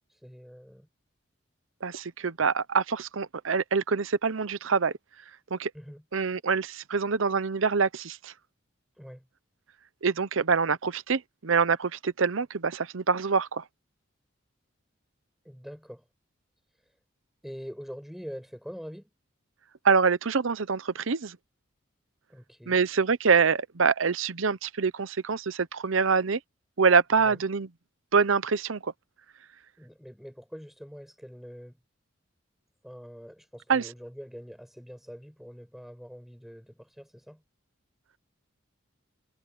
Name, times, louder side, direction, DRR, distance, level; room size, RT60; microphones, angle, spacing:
voice 1, 0.1-0.9 2.4-2.5 5.7-6.0 9.0-9.3 15.4-16.1 17.4-19.1 22.3-22.8 27.2-27.4 29.8-31.8 32.8-37.4, equal, ahead, 6.8 m, -44 dB
voice 2, 1.8-4.9 5.5-5.7 6.1-8.3 10.0-13.6 19.8-21.4 22.7-26.4 26.8-27.7 28.1-28.9 33.7-33.9, right 5 dB, 80° right, 0.8 m, -25 dB
head